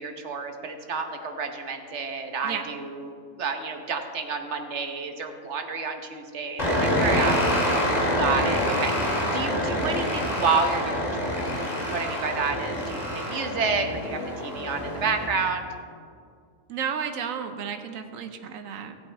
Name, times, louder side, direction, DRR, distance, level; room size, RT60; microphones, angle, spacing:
voice 1, 0.0-7.3 8.1-15.7, right 4 dB, 60° right, 6 dB, 1.3 m, -30 dB
sound 1, 6.6-15.3, equal, 30° left, 2.4 m, -26 dB
voice 2, 6.9-7.4 16.7-19.0, right 7 dB, 80° right, 7 dB, 1.2 m, -32 dB
16.5 x 8.0 x 4.4 m, 2.3 s
omnidirectional pair, 1.4 m